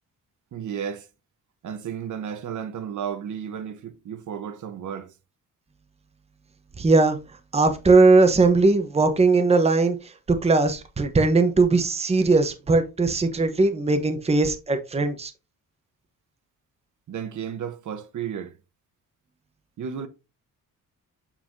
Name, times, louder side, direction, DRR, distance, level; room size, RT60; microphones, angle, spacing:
voice 1, 0.5-1.1 1.6-5.1 17.1-18.6 19.8-20.1, right 8 dB, 60° right, 1.0 m, -33 dB
voice 2, 6.8-7.2 7.5-10.0 10.3-15.3, right 3 dB, 20° right, 0.9 m, -19 dB
7.5 x 5.7 x 2.6 m
wide cardioid pair, 150°, 33 cm